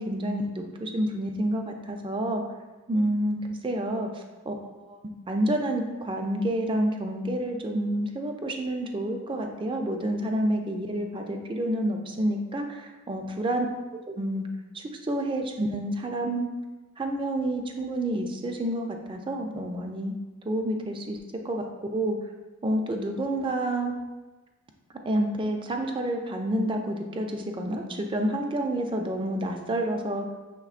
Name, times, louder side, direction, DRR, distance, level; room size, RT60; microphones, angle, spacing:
voice 1, 0.0-2.4 2.9-4.6 4.9-5.0 5.3-13.7 14.1-14.4 14.7-16.5 17.0-20.1 20.4-21.2 21.4-22.2 22.6-23.9 25.1-30.3, right 1 dB, 25° right, 3 dB, 0.4 m, -29 dB
5.8 x 3.4 x 2.4 m, 1.2 s
head